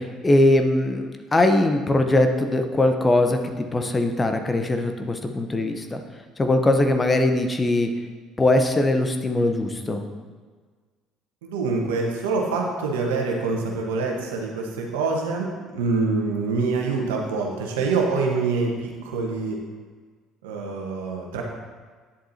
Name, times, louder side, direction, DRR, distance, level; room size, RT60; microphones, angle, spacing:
voice 1, 0.0-6.0 6.4-7.9 8.4-10.0, left 2 dB, 25° left, 6 dB, 0.9 m, -21 dB
voice 2, 11.4-15.5 15.7-19.6 20.4-21.4, right 4 dB, 80° right, 0 dB, 1.3 m, -25 dB
10.0 x 7.6 x 2.8 m, 1.5 s
hypercardioid pair, 60°, 0 cm